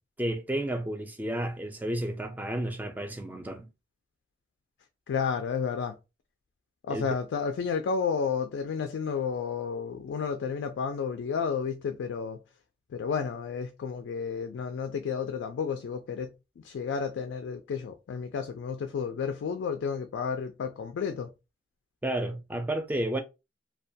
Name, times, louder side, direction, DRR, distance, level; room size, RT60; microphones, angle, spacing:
voice 1, 0.2-3.7 6.9-7.1 22.0-23.2, right 1 dB, 10° right, 0.3 m, -31 dB
voice 2, 5.1-6.0 6.8-12.4 12.9-16.3 16.6-21.3, left 6 dB, 90° left, 0.3 m, -31 dB
2.2 x 2.2 x 2.6 m
head